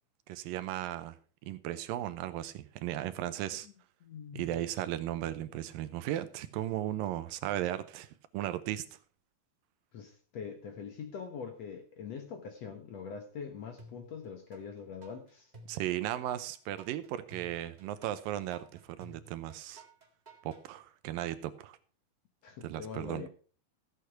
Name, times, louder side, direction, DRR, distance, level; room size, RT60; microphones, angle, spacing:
voice 1, 0.3-1.2 1.4-3.7 4.3-8.1 8.3-8.8 15.7-18.7 19.0-19.8 20.4-21.8 22.6-23.2, right 13 dB, 80° right, 12 dB, 2.4 m, -36 dB
voice 2, 4.0-4.6 9.9-15.5 22.4-23.3, left 6 dB, 65° left, 6 dB, 1.8 m, -43 dB
sound 1, 13.8-14.6 15.0-20.6, right 1 dB, 25° right, 1.0 m, -54 dB
14.0 x 8.4 x 4.5 m, 0.39 s
omnidirectional pair, 4.2 m